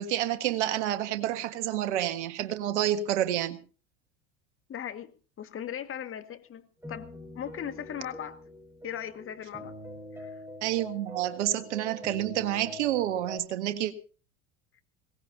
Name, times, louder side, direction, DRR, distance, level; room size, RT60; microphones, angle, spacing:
voice 1, 0.0-3.6 10.6-13.9, right 12 dB, 70° right, 10 dB, 1.8 m, -29 dB
voice 2, 4.7-8.4 8.8-9.8 10.1-10.4, left 9 dB, 35° left, 9 dB, 2.0 m, -39 dB
sound 1, 6.8-13.4, left 1 dB, 5° right, 6.9 m, -44 dB
22.0 x 18.5 x 2.9 m, 0.37 s
hypercardioid pair, 75°, 36 cm